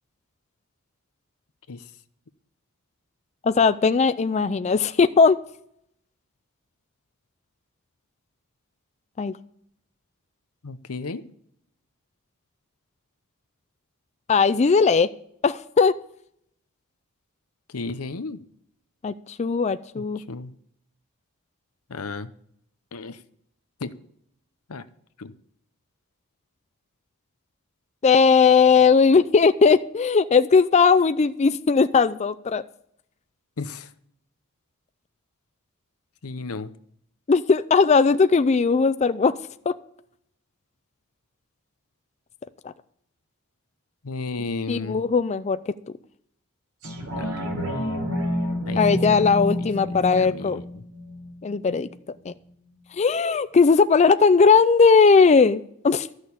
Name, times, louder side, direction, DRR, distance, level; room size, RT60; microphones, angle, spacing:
voice 1, 3.4-5.4 9.2-9.3 14.3-15.1 15.4-15.9 19.0-20.2 28.0-32.6 37.3-39.4 39.7-39.8 44.7-45.7 48.8-50.6 51.4-51.9 52.3-52.4 52.9-56.1, left 5 dB, 30° left, 12 dB, 0.4 m, -18 dB
voice 2, 10.6-11.2 17.7-18.4 19.9-20.5 21.9-22.3 22.9-23.2 23.8-23.9 24.7-24.8 25.2-25.3 33.6-33.9 36.2-36.7 44.0-45.0 47.2-47.3 48.7-48.8 49.1-49.3 49.6-50.9, left 3 dB, 80° left, 13 dB, 0.8 m, -34 dB
sound 1, 46.8-51.9 52.3-52.4, equal, 80° right, 3.5 m, -29 dB
13.5 x 6.4 x 8.4 m, 0.70 s
head